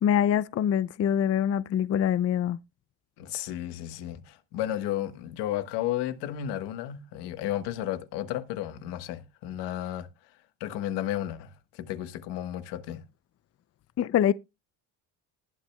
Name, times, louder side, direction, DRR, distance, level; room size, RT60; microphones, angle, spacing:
voice 1, 0.0-2.6 14.0-14.3, left 9 dB, 40° left, 0.5 m, -24 dB
voice 2, 3.2-10.1 10.6-13.0, left 12 dB, 85° left, 1.4 m, -33 dB
20.0 x 7.0 x 2.3 m
cardioid pair, 95°, 40 cm